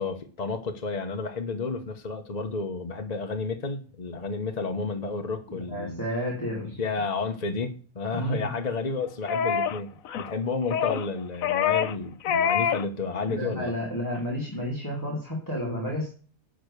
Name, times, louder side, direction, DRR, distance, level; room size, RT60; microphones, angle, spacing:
voice 1, 0.0-6.0 6.6-9.9 10.2-13.7, left 4 dB, 30° left, 5 dB, 1.1 m, -31 dB
voice 2, 5.5-6.8 8.1-8.5 13.3-16.1, equal, 15° left, -2 dB, 2.7 m, -31 dB
sound 1, 9.3-9.8 10.0-10.3 10.7-11.1 11.4-12.0 12.2-12.8 13.2-13.3, left 8 dB, 70° left, 1.1 m, -25 dB
11.5 x 5.2 x 6.7 m, 0.40 s
omnidirectional pair, 1.5 m